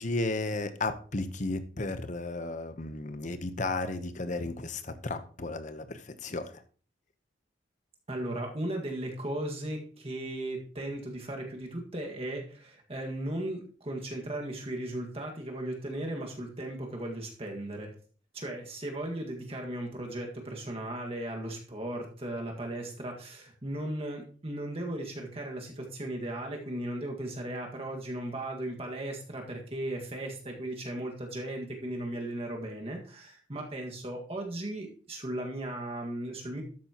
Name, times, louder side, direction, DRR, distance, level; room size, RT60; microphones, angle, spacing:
voice 1, 0.0-6.6, left 2 dB, 40° left, 10 dB, 0.9 m, -34 dB
voice 2, 8.1-17.9 18.3-36.6, right 1 dB, 30° right, 1 dB, 1.8 m, -36 dB
12.5 x 8.7 x 3.0 m, 0.40 s
head